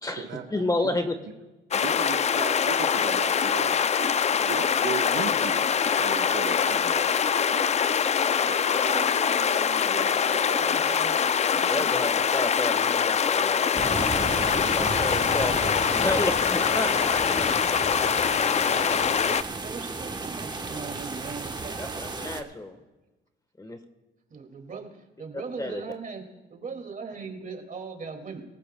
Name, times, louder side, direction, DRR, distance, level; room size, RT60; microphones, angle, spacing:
voice 1, 0.0-1.2 11.5-13.8 14.3-17.5 21.8-22.8 23.6-23.8 25.6-25.8, left 2 dB, 20° left, 8 dB, 1.2 m, -31 dB
sound 1, 1.7-19.4, left 7 dB, 35° left, 0.4 m, -24 dB
voice 2, 1.7-3.8 4.4-7.0, right 7 dB, 70° right, 5 dB, 1.0 m, -35 dB
voice 3, 6.3-6.6 6.9-8.0 8.4-11.9 18.6-22.0 24.3-26.2 26.5-28.4, right 5 dB, 40° right, 4 dB, 2.3 m, -40 dB
sound 2, 13.7-22.4, right 3 dB, 20° right, 1.1 m, -34 dB
24.0 x 14.5 x 2.2 m, 1.1 s
cardioid pair, 90°, 20 cm